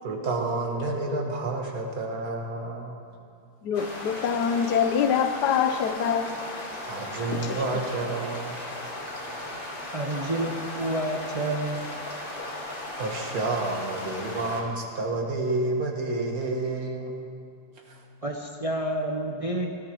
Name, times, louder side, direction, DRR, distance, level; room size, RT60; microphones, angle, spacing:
voice 1, 0.0-2.9 6.9-8.6 13.0-17.2, right 2 dB, 65° right, 1 dB, 1.9 m, -29 dB
voice 2, 3.6-6.3 7.3-7.6, left 7 dB, 90° left, 9 dB, 1.3 m, -25 dB
sound 1, 3.7-14.6, left 1 dB, 35° left, 1.9 m, -36 dB
voice 3, 9.9-11.9 18.2-19.7, right 1 dB, 40° right, 1 dB, 0.5 m, -29 dB
17.5 x 13.5 x 3.0 m, 2.4 s
omnidirectional pair, 1.7 m